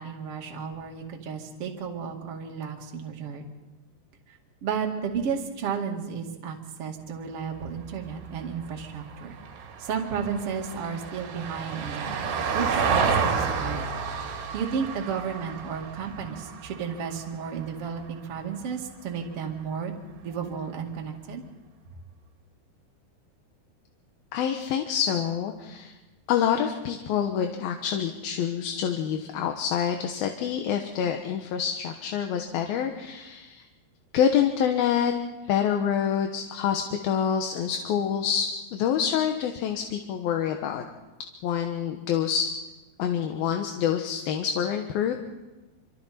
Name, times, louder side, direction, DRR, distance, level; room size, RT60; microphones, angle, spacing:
voice 1, 0.0-3.4 4.6-9.4 9.8-12.2 12.5-13.9 14.2-19.9 20.2-21.4, right 6 dB, 40° right, 1 dB, 2.7 m, -33 dB
Vehicle, 7.6-18.0 20.3-20.4, right 5 dB, 85° right, 4.4 m, -31 dB
voice 2, 24.3-25.9 26.3-33.7 34.1-35.1 35.4-40.8 41.4-42.5 43.0-45.1, left 8 dB, 70° left, 4 dB, 2.8 m, -26 dB
27.0 x 25.5 x 4.4 m, 1.1 s
omnidirectional pair, 4.8 m